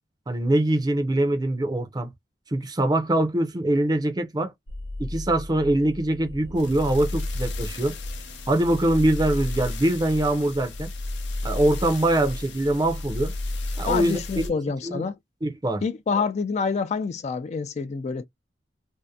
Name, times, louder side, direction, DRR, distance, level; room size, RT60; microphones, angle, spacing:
voice 1, 0.3-2.1 2.5-4.5 5.0-8.0 8.5-10.9 11.4-13.3 13.8-14.4 14.8-15.0 15.4-15.8, right 1 dB, 25° right, 0.5 m, -23 dB
sound 1, 4.7-14.5, left 2 dB, 90° left, 0.7 m, -33 dB
voice 2, 13.8-15.2 15.8-18.3, left 5 dB, 40° left, 0.3 m, -27 dB
2.7 x 2.1 x 2.2 m
head